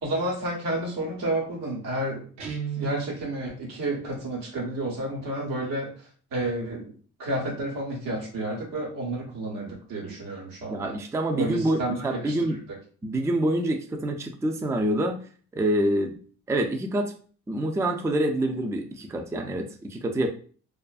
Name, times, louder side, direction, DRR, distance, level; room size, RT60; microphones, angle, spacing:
voice 1, 0.0-2.3 2.8-5.9 6.3-6.9 7.2-11.0 11.3-12.4, right 1 dB, 85° right, -2 dB, 1.1 m, -30 dB
Guitar, 2.4-3.2, right 7 dB, 60° right, 0.7 m, -33 dB
voice 2, 10.7-12.6 13.0-15.2 15.5-16.2 16.5-17.1 17.5-20.3, right 1 dB, 10° right, 4 dB, 0.4 m, -26 dB
2.5 x 2.4 x 2.3 m, 0.42 s
supercardioid pair, 60°, 33 cm